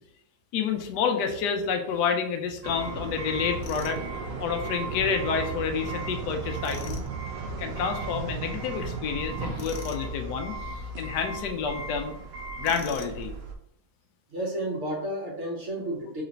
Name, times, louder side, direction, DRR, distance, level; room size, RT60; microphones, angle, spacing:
voice 1, 0.5-4.0 4.4-7.0 7.6-10.6 11.0-12.1 12.6-13.3, left 6 dB, 90° left, 5 dB, 1.2 m, -29 dB
sound 1, 2.6-13.5, right 3 dB, 75° right, 0.5 m, -35 dB
Tools, 3.6-4.0 6.6-7.1 9.6-10.1 12.6-13.2, left 6 dB, 70° left, 1.0 m, -42 dB
voice 2, 14.3-16.2, right 1 dB, 50° right, -2 dB, 1.1 m, -31 dB
3.2 x 3.0 x 3.9 m, 0.74 s
omnidirectional pair, 1.7 m